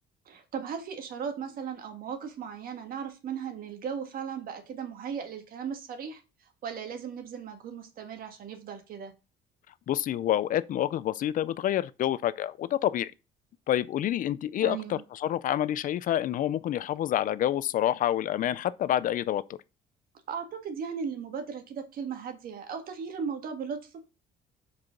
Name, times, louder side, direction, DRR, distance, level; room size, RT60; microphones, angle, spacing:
voice 1, 0.2-6.2 6.6-9.1 14.6-15.0 20.3-24.1, right 7 dB, 60° right, 1.7 m, -37 dB
voice 2, 9.9-13.1 13.7-19.4, left 12 dB, 55° left, 0.4 m, -28 dB
4.8 x 4.8 x 5.8 m
cardioid pair, 110°, 17 cm